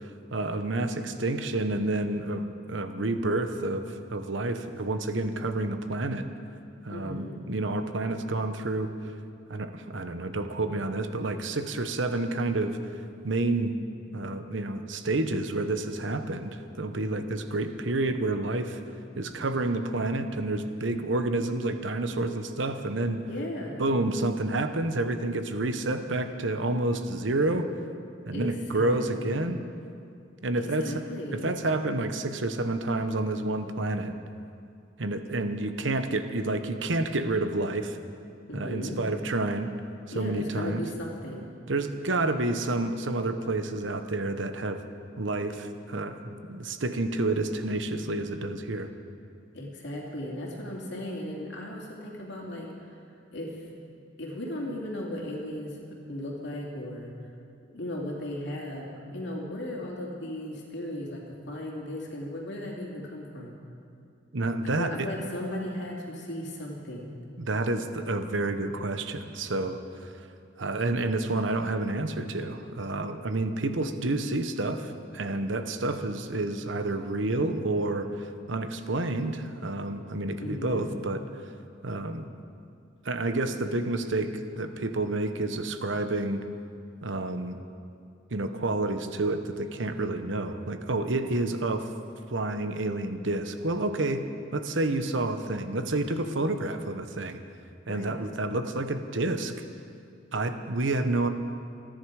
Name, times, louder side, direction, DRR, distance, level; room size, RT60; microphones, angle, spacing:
voice 1, 0.3-6.3 6.8-8.9 9.5-12.8 13.2-13.7 14.1-18.8 19.2-23.3 23.8-27.7 28.3-29.6 30.4-30.9 31.3-34.1 35.0-38.0 38.5-39.7 40.1-40.8 41.7-44.8 45.2-48.9 64.3-65.1 67.4-69.8 70.6-81.2 81.8-82.3 83.0-86.4 87.0-87.6 88.3-91.9 92.3-94.2 94.5-97.4 97.9-99.5 100.3-101.3, right 2 dB, 70° right, 8 dB, 1.0 m, -29 dB
voice 2, 6.9-7.4 23.3-23.9 28.0-28.5 28.7-29.6 30.6-31.6 38.5-39.0 40.1-41.5 49.5-53.0 53.3-53.7 54.2-57.1 57.7-58.9 59.1-63.5 64.8-67.2 80.4-80.9 97.9-98.2, left 1 dB, 65° left, -2 dB, 2.7 m, -36 dB
28.0 x 10.5 x 4.8 m, 2.5 s
head